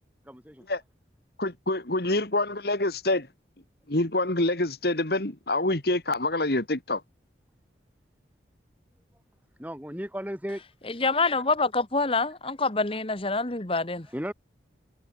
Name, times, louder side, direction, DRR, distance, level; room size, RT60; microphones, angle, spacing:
voice 1, 0.2-0.6 9.6-10.6 14.1-14.3, equal, 10° right, 6.4 m, -35 dB
voice 2, 1.4-3.3 3.9-7.0, left 2 dB, 55° left, 2.1 m, -26 dB
voice 3, 11.0-14.1, left 3 dB, 30° left, 1.5 m, -26 dB
head